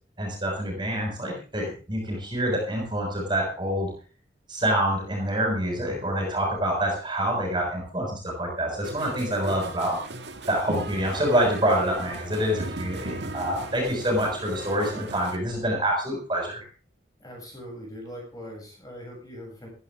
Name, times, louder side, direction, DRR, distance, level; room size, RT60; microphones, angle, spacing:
voice 1, 0.2-3.9 4.5-10.0 10.5-16.7, equal, 25° right, 1 dB, 6.6 m, -26 dB
sound 1, 8.8-15.4, right 2 dB, 70° right, 2.1 m, -37 dB
voice 2, 17.2-19.7, equal, 20° left, -1 dB, 8.0 m, -41 dB
16.0 x 14.5 x 3.8 m, 0.38 s
head